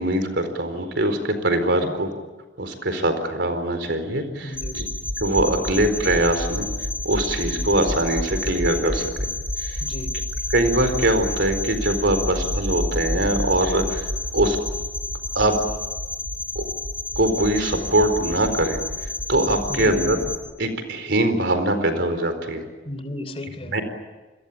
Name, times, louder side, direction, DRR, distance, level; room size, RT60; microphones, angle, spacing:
voice 1, 0.0-2.1 2.6-4.9 5.2-6.7 7.0-9.3 9.6-9.8 10.5-14.0 14.3-14.6 15.3-15.6 16.5-16.6 17.2-18.8 19.3-20.2 20.6-22.6 23.6-23.8, right 1 dB, 65° right, 8 dB, 4.3 m, -22 dB
voice 2, 4.4-4.8 9.8-10.2 19.7-20.0 22.8-23.8, left 1 dB, 30° left, 10 dB, 3.1 m, -34 dB
sound 1, 4.5-20.4, left 1 dB, 10° left, 5.2 m, -29 dB
29.0 x 22.0 x 8.7 m, 1.2 s
head